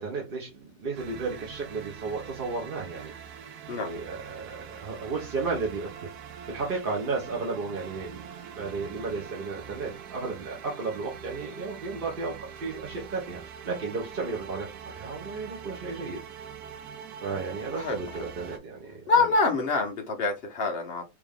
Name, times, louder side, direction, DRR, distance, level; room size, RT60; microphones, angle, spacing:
voice 1, 0.0-3.1 3.7-5.9 6.5-16.2 17.2-19.2, right 4 dB, 40° right, -2 dB, 0.8 m, -34 dB
sound 1, 1.0-18.6, right 7 dB, 70° right, 1.0 m, -43 dB
voice 2, 19.1-21.0, left 4 dB, 70° left, 2 dB, 0.5 m, -25 dB
3.6 x 2.8 x 3.4 m, 0.22 s
omnidirectional pair, 2.0 m